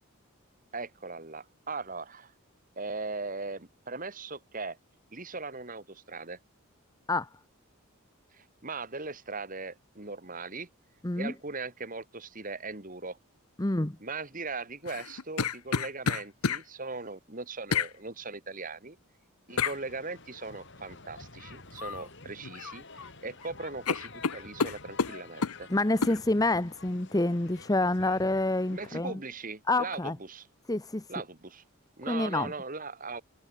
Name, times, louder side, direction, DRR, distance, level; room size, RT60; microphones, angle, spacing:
voice 1, 0.7-2.3 2.8-4.8 5.1-6.4 8.3-10.7 11.2-13.2 14.0-19.0 19.5-25.7 28.7-30.5 31.1-31.6 32.0-33.2, right 3 dB, 40° right, 2.4 m, -39 dB
voice 2, 13.6-14.0 25.7-29.2 29.7-30.2 30.7-31.0 32.1-32.5, left 2 dB, 15° left, 0.8 m, -27 dB
sound 1, 14.9-16.6 17.7-17.9 19.6-19.8 21.8-22.1 22.4-23.1 23.4-23.5 23.9-25.6 26.0-26.2, left 5 dB, 90° left, 0.9 m, -30 dB
sound 2, 19.5-29.0, left 3 dB, 55° left, 7.8 m, -50 dB
head